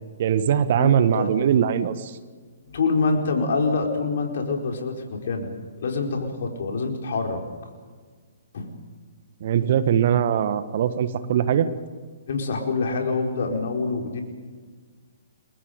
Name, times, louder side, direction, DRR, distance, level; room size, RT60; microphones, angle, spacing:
voice 1, 0.2-2.1 9.4-11.7, right 9 dB, 50° right, 12 dB, 1.5 m, -21 dB
voice 2, 0.7-1.3 2.6-5.5 5.8-7.4 8.5-8.7 12.3-14.2, left 4 dB, 55° left, 3 dB, 4.5 m, -26 dB
30.0 x 23.0 x 5.2 m, 1.5 s
figure-of-eight pair, 125°, 0 cm